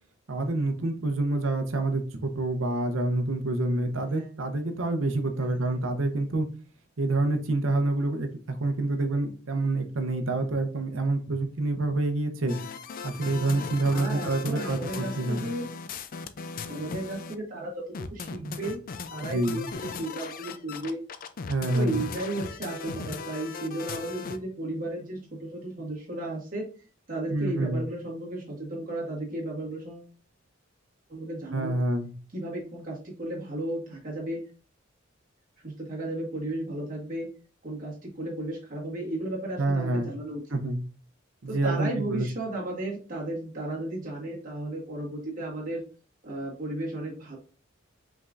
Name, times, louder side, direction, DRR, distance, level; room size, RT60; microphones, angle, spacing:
voice 1, 0.3-6.5 7.0-12.6 13.0-15.4 19.2-19.7 21.5-22.1 27.3-27.8 31.5-32.1 39.6-40.1 40.5-40.8 41.4-42.2, right 2 dB, 80° right, 6 dB, 0.8 m, -27 dB
voice 2, 5.4-5.7 13.5-13.6 13.9-15.7 16.7-17.8 18.1-18.8 19.1-21.0 21.7-26.7 27.1-30.1 31.1-31.7 32.3-34.4 35.6-37.3 37.6-40.4 41.5-45.8 46.2-47.4, right 1 dB, 45° right, -4 dB, 1.7 m, -34 dB
sound 1, 12.5-17.3 17.9-24.4, left 5 dB, 45° left, 0.4 m, -38 dB
5.3 x 3.6 x 2.5 m, 0.37 s
head